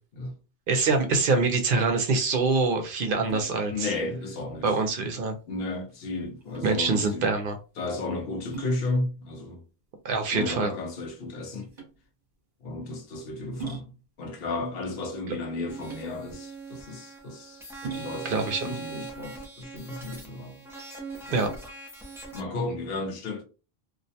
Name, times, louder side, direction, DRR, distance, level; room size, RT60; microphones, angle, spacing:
voice 1, 0.7-3.7 4.6-5.3 6.6-7.6 10.0-10.7 18.2-18.6 21.3-21.5, right 4 dB, 65° right, 0.7 m, -24 dB
sound 1, 1.7-20.2, right 6 dB, 45° right, 1.0 m, -45 dB
voice 2, 3.7-4.8 5.4-7.3 7.8-9.6 10.3-11.7 12.6-13.9 14.2-17.7 17.9-20.6 21.3-21.5 22.3-23.4, left 2 dB, 70° left, 0.8 m, -33 dB
sound 2, 15.7-22.4, right 3 dB, 5° right, 0.4 m, -41 dB
2.5 x 2.1 x 2.7 m
omnidirectional pair, 1.1 m